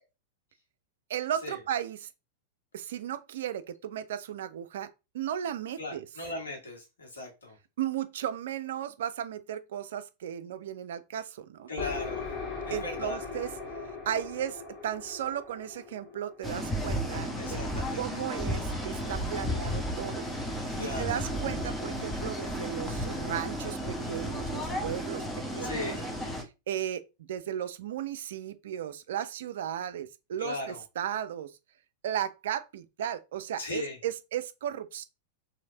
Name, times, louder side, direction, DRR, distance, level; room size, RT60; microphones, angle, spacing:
voice 1, 1.1-2.1 2.7-6.1 7.8-11.7 12.7-13.5 14.1-17.6 18.0-20.2 20.6-23.8 24.1-25.2 25.6-26.0 26.7-31.5 32.0-35.0, right 10 dB, 60° right, 0.4 m, -35 dB
voice 2, 5.8-7.6 11.7-12.2 12.6-13.2 17.4-18.2 20.8-21.2 25.6-26.0 30.4-30.8 33.6-34.0, left 2 dB, 70° left, 1.5 m, -37 dB
sound 1, 11.8-17.4, left 5 dB, 30° left, 1.8 m, -40 dB
sound 2, 16.4-26.4, equal, 10° left, 0.9 m, -33 dB
3.2 x 2.7 x 3.8 m
figure-of-eight pair, 95°, 0 cm